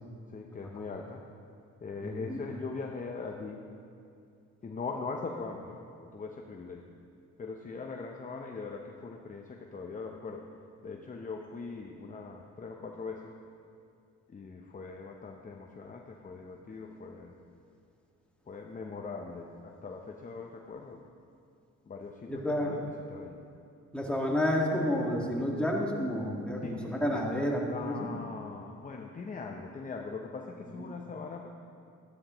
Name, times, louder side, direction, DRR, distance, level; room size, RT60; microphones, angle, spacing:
voice 1, 0.3-1.2 1.8-3.6 4.6-6.8 7.4-10.5 10.8-13.3 14.3-17.3 18.5-21.0 21.8-23.4 26.6-26.8 27.7-31.5, left 4 dB, 25° left, 2 dB, 0.7 m, -41 dB
voice 2, 2.0-2.4 22.3-22.8 23.9-28.1 30.7-30.9, left 1 dB, 5° left, -2 dB, 1.7 m, -30 dB
13.0 x 11.5 x 3.0 m, 2.5 s
cardioid pair, 90°, 30 cm